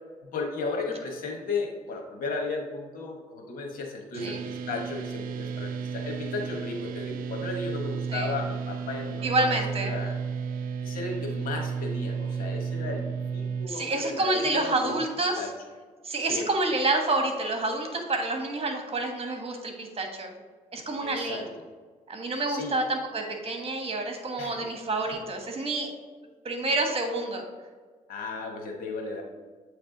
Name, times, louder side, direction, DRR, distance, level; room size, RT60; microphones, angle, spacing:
voice 1, 0.2-10.2 10.8-13.1 13.3-15.0 15.4-15.5 16.2-16.5 21.0-21.5 22.5-22.7 24.4-24.7 25.0-25.2 28.1-29.2, left 3 dB, 85° left, 1 dB, 1.2 m, -35 dB
sound 1, 4.2-13.7, right 6 dB, 85° right, 0.4 m, -33 dB
voice 2, 9.2-10.0 13.7-15.5 16.0-20.3 20.7-21.4 22.1-25.9 26.4-27.4, right 2 dB, 45° right, 3 dB, 1.4 m, -28 dB
8.0 x 3.3 x 3.9 m, 1.5 s
cardioid pair, 70°, 14 cm